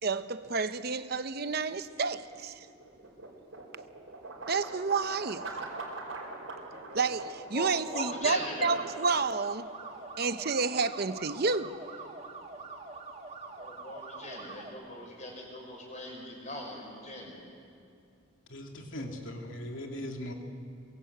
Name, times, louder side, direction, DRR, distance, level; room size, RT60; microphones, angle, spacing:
voice 1, 0.0-2.7 4.5-5.6 6.9-9.7 10.2-11.8, right 4 dB, 50° right, 0.9 m, -30 dB
sound 1, 1.9-16.0, right 2 dB, 75° right, 4.7 m, -46 dB
voice 2, 7.5-8.8 13.6-17.5, left 1 dB, 35° left, 5.7 m, -40 dB
sound 2, 7.8-14.7, right 3 dB, 30° right, 1.9 m, -45 dB
voice 3, 18.5-20.3, left 1 dB, 70° left, 2.7 m, -39 dB
23.0 x 21.5 x 8.0 m
head